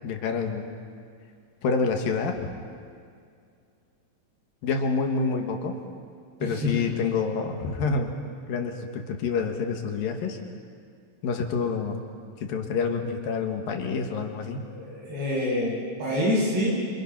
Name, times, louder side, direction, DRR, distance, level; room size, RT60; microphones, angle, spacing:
voice 1, 0.0-0.7 1.6-2.4 4.6-5.8 6.4-8.2 8.5-10.4 11.2-12.0 12.4-14.7, left 4 dB, 65° left, 4 dB, 3.2 m, -27 dB
voice 2, 6.4-6.9 14.7-16.7, left 1 dB, 90° right, -5 dB, 10.0 m, -27 dB
27.0 x 26.5 x 5.9 m, 2.3 s
omnidirectional pair, 4.5 m